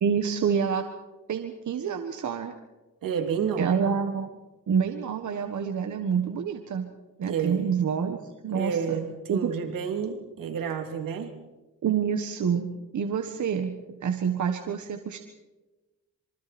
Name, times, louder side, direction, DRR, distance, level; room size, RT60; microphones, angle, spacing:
voice 1, 0.0-0.9 1.3-2.6 3.6-4.3 4.7-6.9 7.2-9.0 9.3-9.5 11.8-12.7 12.9-15.2, right 7 dB, 65° right, 6 dB, 1.6 m, -27 dB
voice 2, 3.0-3.7 7.3-7.7 8.5-11.3, right 7 dB, 85° right, 5 dB, 3.1 m, -30 dB
26.5 x 24.0 x 4.4 m, 1.1 s
cardioid pair, 105°, 32 cm